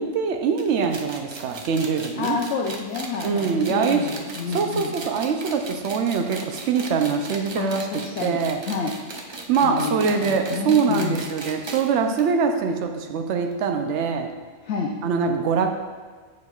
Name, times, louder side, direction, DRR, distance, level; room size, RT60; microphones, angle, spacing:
voice 1, 0.0-2.4 3.2-4.1 4.5-8.6 9.5-14.3 15.0-15.7, right 5 dB, 80° right, 5 dB, 0.9 m, -23 dB
sound 1, 0.6-11.9 12.2-12.3 12.5-12.6 13.5-13.6, right 3 dB, 45° right, 0.3 m, -37 dB
voice 2, 2.2-4.9 7.6-8.4 8.7-8.9 9.6-11.2 14.6-14.9, left 5 dB, 75° left, -1 dB, 0.9 m, -29 dB
8.3 x 6.6 x 2.4 m, 1.4 s
omnidirectional pair, 1.2 m